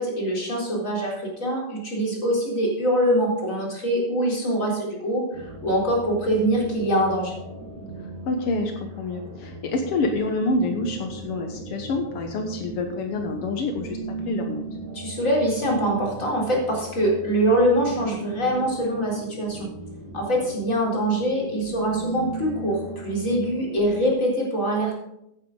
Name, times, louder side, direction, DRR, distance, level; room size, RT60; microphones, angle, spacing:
voice 1, 0.0-7.4 14.9-19.7 20.1-25.0, equal, 20° left, -3 dB, 3.9 m, -24 dB
sound 1, 5.3-24.0, right 2 dB, 40° right, 2.0 m, -38 dB
voice 2, 8.2-14.6, left 2 dB, 70° left, 3 dB, 1.3 m, -27 dB
15.5 x 9.7 x 4.0 m, 0.84 s
omnidirectional pair, 4.3 m